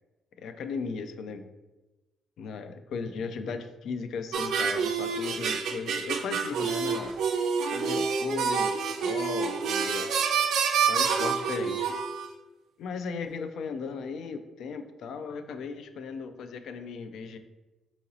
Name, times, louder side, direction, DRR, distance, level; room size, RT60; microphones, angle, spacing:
voice 1, 0.4-1.4 2.4-7.1 7.7-8.7 9.0-10.1 10.9-11.9 12.8-17.4, left 5 dB, 75° left, 9 dB, 0.3 m, -36 dB
sound 1, 4.3-12.3, right 6 dB, 75° right, 0.4 m, -28 dB
2.9 x 2.6 x 3.9 m, 1.1 s
cardioid pair, 90°, 0 cm